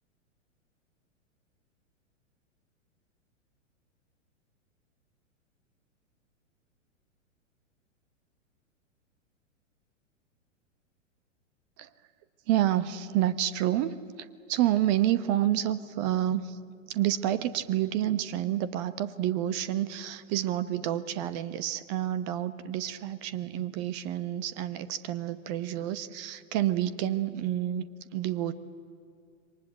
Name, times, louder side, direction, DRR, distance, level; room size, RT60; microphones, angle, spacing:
voice 1, 12.5-16.6 16.9-27.9 28.1-28.5, right 12 dB, 35° right, 13 dB, 1.0 m, -29 dB
27.5 x 23.5 x 8.4 m, 2.3 s
figure-of-eight pair, 105°, 39 cm